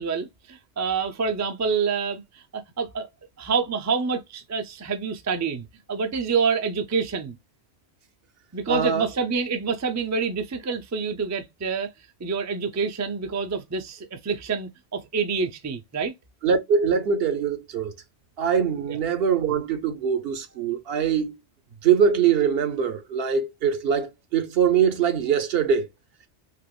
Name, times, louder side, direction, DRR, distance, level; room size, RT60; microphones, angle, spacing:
voice 1, 0.0-3.1 3.4-7.4 8.5-11.9 12.2-16.1 18.9-19.0, right 5 dB, 30° right, 0.3 m, -27 dB
voice 2, 8.7-9.1 16.4-17.9 18.4-21.4 21.8-25.9, right 7 dB, 65° right, 0.9 m, -23 dB
3.3 x 2.9 x 2.2 m
omnidirectional pair, 1.1 m